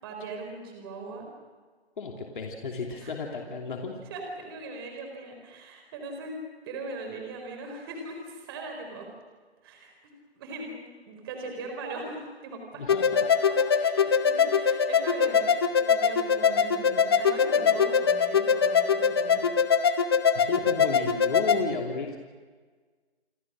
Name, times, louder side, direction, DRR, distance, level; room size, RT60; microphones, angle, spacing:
voice 1, 0.0-1.3 3.0-3.1 4.1-6.4 6.6-9.0 9.6-12.8 13.5-19.5, right 3 dB, 20° right, 3 dB, 4.5 m, -40 dB
voice 2, 2.0-3.9 12.7-13.3 20.3-22.2, left 4 dB, 50° left, 1 dB, 3.1 m, -33 dB
sound 1, 12.9-21.6, left 6 dB, 20° left, 0.9 m, -23 dB
29.5 x 23.0 x 6.3 m, 1.5 s
hypercardioid pair, 165°, 33 cm